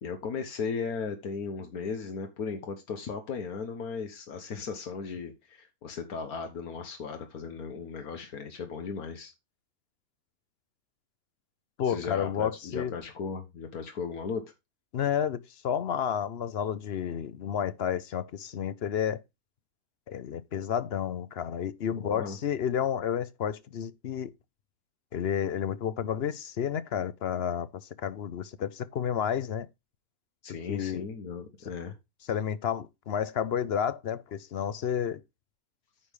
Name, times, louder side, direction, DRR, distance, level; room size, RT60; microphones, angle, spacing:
voice 1, 0.0-9.3 11.9-14.5 22.0-22.4 30.4-31.9, left 5 dB, 85° left, 1.7 m, -36 dB
voice 2, 11.8-13.0 14.9-19.2 20.1-24.3 25.1-29.7 30.7-31.0 32.3-35.2, left 8 dB, 55° left, 0.8 m, -31 dB
9.6 x 3.5 x 6.4 m
omnidirectional pair, 1.5 m